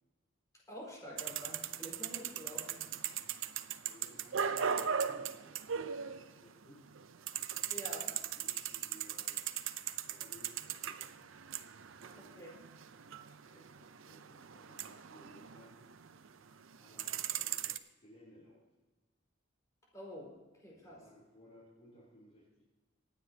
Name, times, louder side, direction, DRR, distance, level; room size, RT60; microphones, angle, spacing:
voice 1, 0.7-3.0 7.7-8.2 12.2-12.5 19.9-21.0, equal, 15° left, -4 dB, 4.8 m, -48 dB
sound 1, 1.2-6.6 6.9-16.3 16.6-17.8, right 8 dB, 75° right, 0.6 m, -39 dB
voice 2, 3.8-7.0 8.3-9.4 10.1-11.3 11.8-12.5 13.4-16.2 16.8-17.7 18.0-18.6 20.7-22.6, equal, 35° left, -6 dB, 3.5 m, -60 dB
26.0 x 9.4 x 2.9 m, 1.2 s
head